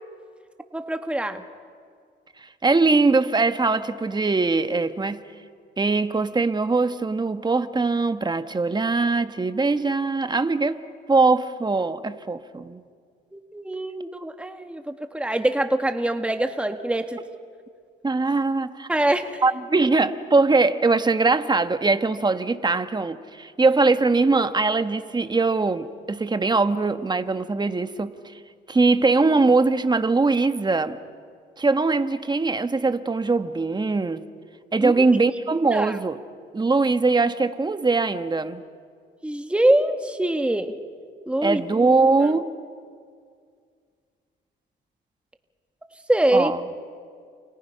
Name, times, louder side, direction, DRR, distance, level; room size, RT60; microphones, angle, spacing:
voice 1, 0.7-1.4 13.3-17.2 18.9-19.4 34.8-35.0 35.7-36.0 39.2-40.7 41.3-41.6 42.2-42.4 46.1-46.5, right 1 dB, 5° right, 6 dB, 1.6 m, -24 dB
voice 2, 2.6-5.2 5.8-10.8 11.1-12.8 18.0-18.9 19.4-28.1 28.7-31.0 31.6-34.2 34.7-36.2 36.5-38.6 41.4-42.5 46.3-46.6, right 3 dB, 20° right, 10 dB, 1.3 m, -21 dB
29.5 x 29.0 x 5.8 m, 2.1 s
cardioid pair, 90°, 20 cm